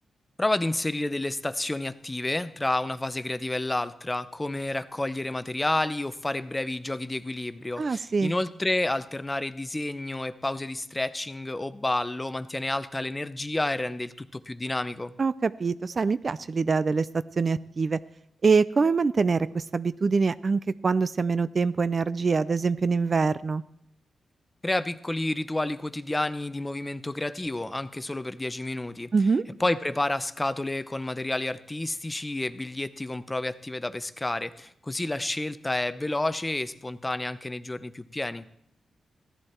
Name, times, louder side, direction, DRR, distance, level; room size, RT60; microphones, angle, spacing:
voice 1, 0.4-15.1 24.6-29.1 29.6-38.5, left 2 dB, 15° left, 14 dB, 0.6 m, -30 dB
voice 2, 7.8-8.3 15.2-17.1 17.4-18.0 18.4-23.6 29.1-29.4, right 4 dB, 40° right, 16 dB, 0.4 m, -24 dB
15.5 x 11.0 x 4.4 m, 0.76 s
wide cardioid pair, 105°, 0 cm